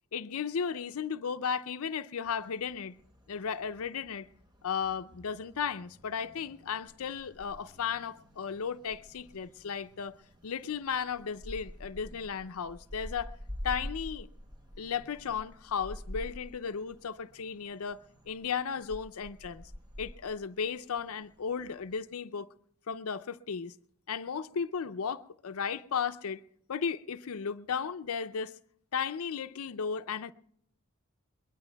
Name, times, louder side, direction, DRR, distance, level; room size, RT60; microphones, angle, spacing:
voice 1, 0.1-3.0 3.3-4.3 4.6-10.2 10.4-13.3 13.6-14.3 14.8-19.7 20.0-22.5 22.9-23.7 24.1-26.4 26.7-28.5 28.9-30.3, left 6 dB, 80° left, 0.5 m, -35 dB
sound 1, 2.2-22.0, equal, 20° right, 0.8 m, -48 dB
22.0 x 21.5 x 2.2 m
head